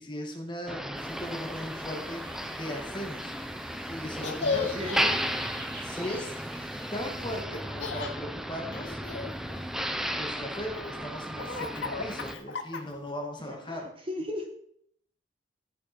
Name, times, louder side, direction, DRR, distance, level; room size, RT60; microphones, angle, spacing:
voice 1, 0.0-3.3 3.9-5.0 5.4-5.5 5.8-6.4 6.9-9.0 10.2-13.9, equal, 25° left, 2 dB, 1.8 m, -38 dB
Motor vehicle (road), 0.7-12.3, equal, ahead, 0.5 m, -34 dB
sound 1, 0.9-7.4, right 1 dB, 85° right, 4.6 m, -48 dB
Laughter, 4.2-5.0 7.5-8.1 8.7-10.0 10.5-13.1, left 4 dB, 75° left, 1.1 m, -35 dB
voice 2, 4.5-5.2 13.5-13.8 14.1-14.5, left 1 dB, 30° right, 3 dB, 1.4 m, -35 dB
14.0 x 6.8 x 4.3 m, 0.67 s
head